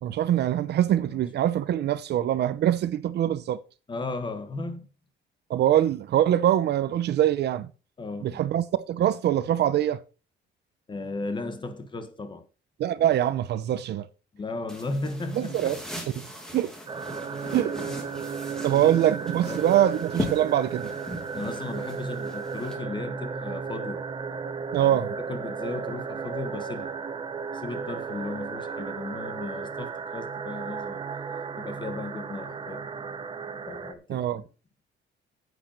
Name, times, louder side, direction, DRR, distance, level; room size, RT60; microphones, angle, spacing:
voice 1, 0.0-3.6 5.5-7.7 8.2-10.0 12.8-14.1 15.3-15.8 16.2-16.3 16.5-16.7 17.5-17.7 18.6-20.9 24.7-25.1 34.1-34.4, right 11 dB, 55° right, 0.7 m, -24 dB
voice 2, 3.9-4.9 8.0-8.4 10.9-12.4 14.3-15.7 17.4-18.4 18.7-19.0 19.3-19.7 21.3-24.0 24.8-25.0 25.3-27.0 27.5-31.0 31.6-32.9 33.7-34.3, left 3 dB, 25° left, 1.4 m, -36 dB
sound 1, 14.7-22.7, equal, 5° left, 2.4 m, -38 dB
sound 2, 16.9-33.9, right 5 dB, 25° right, 0.9 m, -34 dB
9.8 x 8.1 x 4.4 m
cardioid pair, 170°, 21 cm